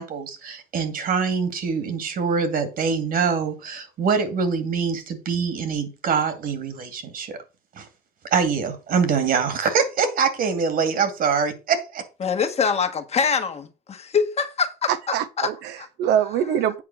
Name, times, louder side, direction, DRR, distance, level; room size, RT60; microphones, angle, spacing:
voice 1, 0.0-7.4 7.8-7.9 8.3-12.0, right 5 dB, 60° right, 2.3 m, -24 dB
voice 2, 12.2-14.9 15.4-15.5 15.8-15.9, left 6 dB, 40° left, 1.5 m, -24 dB
voice 3, 14.9-16.8, right 9 dB, 80° right, 0.7 m, -24 dB
8.5 x 4.8 x 6.1 m
cardioid pair, 110°, 17 cm